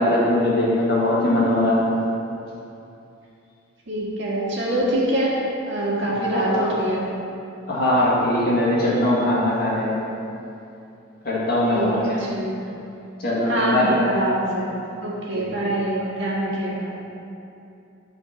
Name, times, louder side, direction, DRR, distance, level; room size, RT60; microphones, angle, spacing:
voice 1, 0.0-1.9 6.3-6.7 7.7-9.9 11.3-12.2 13.2-14.1 15.6-15.7, left 1 dB, 45° left, -6 dB, 2.0 m, -21 dB
voice 2, 3.9-5.4 5.7-7.1 11.7-12.6 13.5-14.7 15.0-17.0, right 1 dB, 60° right, -5 dB, 1.7 m, -24 dB
9.8 x 4.3 x 5.9 m, 2.7 s
head